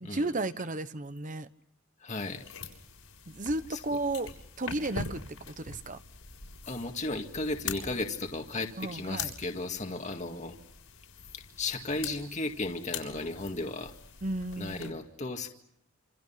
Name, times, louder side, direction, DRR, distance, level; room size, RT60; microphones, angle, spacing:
voice 1, 0.0-1.5 3.3-4.3 4.6-6.0 8.8-9.3 14.2-15.0, right 2 dB, 35° right, 12 dB, 1.0 m, -33 dB
voice 2, 2.0-2.4 3.7-3.8 6.7-10.6 11.3-13.9 14.6-15.5, left 2 dB, 35° left, 4 dB, 2.0 m, -35 dB
sound 1, 2.2-14.9, left 5 dB, 85° left, 6.8 m, -44 dB
28.0 x 27.5 x 5.8 m, 0.72 s
head